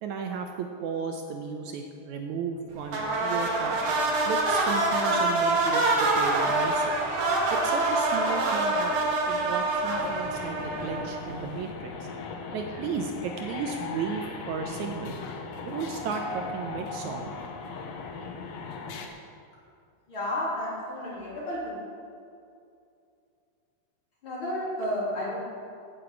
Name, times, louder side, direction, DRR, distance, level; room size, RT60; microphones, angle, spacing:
voice 1, 0.0-3.8 4.3-6.9 7.5-8.9 9.3-12.1 12.5-15.2 15.6-17.3, right 6 dB, 75° right, 3 dB, 1.9 m, -34 dB
sound 1, 2.9-11.4, right 2 dB, 50° right, 2.5 m, -25 dB
sound 2, 9.9-19.1, left 4 dB, 65° left, 1.7 m, -38 dB
voice 2, 20.1-21.8 24.2-25.4, left 1 dB, 35° left, -7 dB, 4.0 m, -31 dB
8.8 x 8.7 x 8.3 m, 2.5 s
omnidirectional pair, 3.9 m